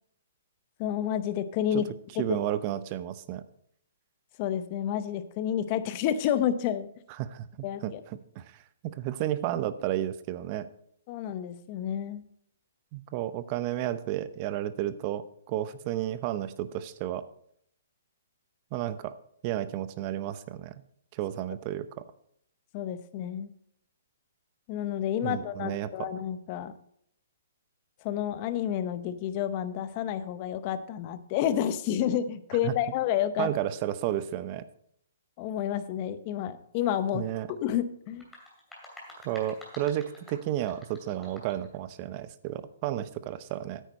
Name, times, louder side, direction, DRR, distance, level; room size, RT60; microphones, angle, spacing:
voice 1, 0.8-1.9 4.4-6.9 7.6-8.0 11.1-12.2 22.7-23.5 24.7-26.7 28.0-33.5 35.4-38.3, left 10 dB, 35° left, 12 dB, 0.8 m, -30 dB
voice 2, 2.2-3.4 7.2-7.5 7.8-10.7 12.9-17.2 18.7-19.1 19.4-20.7 21.1-22.0 25.2-25.9 32.6-32.7 33.4-34.6 37.1-37.5 39.2-43.8, right 12 dB, 35° right, 14 dB, 0.6 m, -32 dB
sound 1, 38.1-41.7, left 1 dB, 5° left, 2.7 m, -49 dB
9.2 x 9.1 x 4.1 m, 0.69 s
hypercardioid pair, 150°, 0 cm